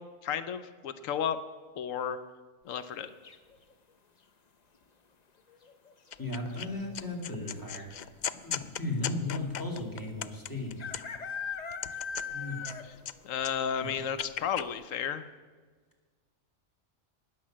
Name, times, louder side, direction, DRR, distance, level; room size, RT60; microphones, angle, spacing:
voice 1, 0.0-1.4 1.8-2.2 2.7-3.1 13.2-15.3, left 8 dB, 85° left, 11 dB, 1.1 m, -33 dB
sound 1, 3.2-3.7 5.5-5.9 6.2-6.3 6.5-7.0 7.8-7.9 8.1-8.2 9.8-9.9 10.8-13.1 13.4-13.5 14.0-14.1 14.6-14.7, left 6 dB, 40° left, 0.8 m, -39 dB
sound 2, 6.1-6.7 6.9-11.3 11.7-13.1 13.4-14.7, left 9 dB, 70° left, 0.4 m, -38 dB
voice 2, 6.2-8.1 8.4-10.8 12.3-12.6 13.8-13.9, left 2 dB, 15° left, 1 dB, 2.4 m, -36 dB
18.5 x 6.6 x 7.4 m, 1.5 s
omnidirectional pair, 1.3 m